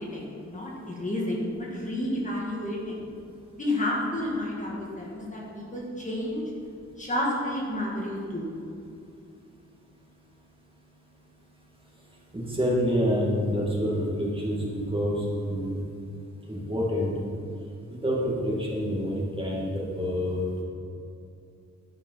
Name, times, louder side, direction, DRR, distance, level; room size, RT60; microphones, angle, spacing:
voice 1, 0.0-3.0 3.6-6.4 7.0-8.5, left 1 dB, 25° left, -4 dB, 1.8 m, -31 dB
voice 2, 12.3-15.8 16.5-17.1 17.9-20.6, equal, 20° right, -5 dB, 2.3 m, -27 dB
12.0 x 6.9 x 5.7 m, 2.5 s
wide cardioid pair, 150°, 29 cm